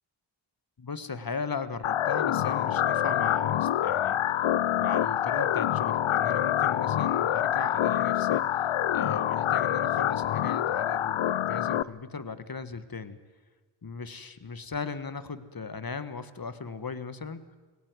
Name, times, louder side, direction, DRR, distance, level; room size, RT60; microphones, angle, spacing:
voice 1, 0.8-4.2 4.8-13.2 13.8-17.4, left 5 dB, 45° left, 12 dB, 1.5 m, -37 dB
sound 1, 1.8-11.8, left 11 dB, 85° left, 0.7 m, -26 dB
19.5 x 17.5 x 9.5 m, 1.3 s
cardioid pair, 45°, 48 cm